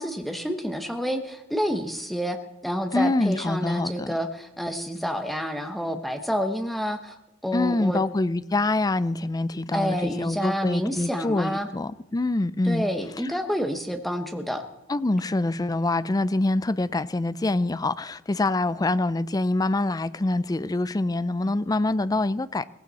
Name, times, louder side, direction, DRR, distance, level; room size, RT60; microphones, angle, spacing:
voice 1, 0.0-2.4 2.6-7.2 7.4-8.0 9.7-11.7 12.6-14.6, equal, ahead, 1.0 m, -28 dB
voice 2, 2.9-4.1 7.5-12.8 14.9-22.6, left 2 dB, 20° left, 0.4 m, -25 dB
18.5 x 15.5 x 4.2 m
head